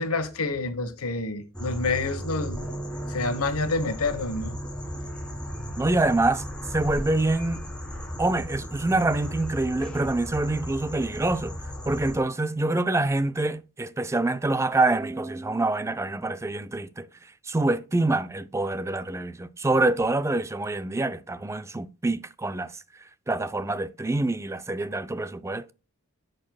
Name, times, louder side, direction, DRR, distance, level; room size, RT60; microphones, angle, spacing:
voice 1, 0.0-2.7 3.1-4.6, left 3 dB, 80° left, 1.2 m, -28 dB
sound 1, 1.5-12.2, equal, 5° left, 1.8 m, -35 dB
voice 2, 5.8-6.4 6.7-7.6 8.2-11.6 11.9-17.1 17.4-22.7 23.3-25.7, right 2 dB, 15° right, 0.4 m, -26 dB
10.5 x 6.5 x 2.3 m
head